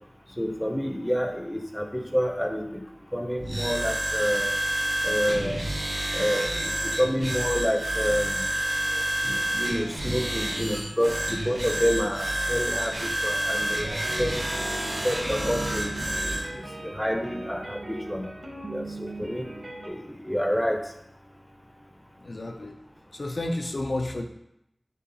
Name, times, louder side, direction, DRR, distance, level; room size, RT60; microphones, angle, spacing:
voice 1, 0.4-2.8 3.1-4.5 5.0-5.7 6.1-6.7 7.0-8.5 9.2-14.7 15.0-15.9 16.2-18.3 18.7-19.5 19.8-20.8, equal, 5° left, 4 dB, 0.5 m, -28 dB
sound 1, 3.4-16.4, right 1 dB, 70° right, 1.5 m, -29 dB
sound 2, 13.5-19.9, right 1 dB, 55° right, 0.9 m, -38 dB
voice 2, 22.2-22.8 23.1-24.2, left 1 dB, 60° left, 3 dB, 0.4 m, -31 dB
5.4 x 2.4 x 3.9 m, 0.80 s
wide cardioid pair, 55°, 0 cm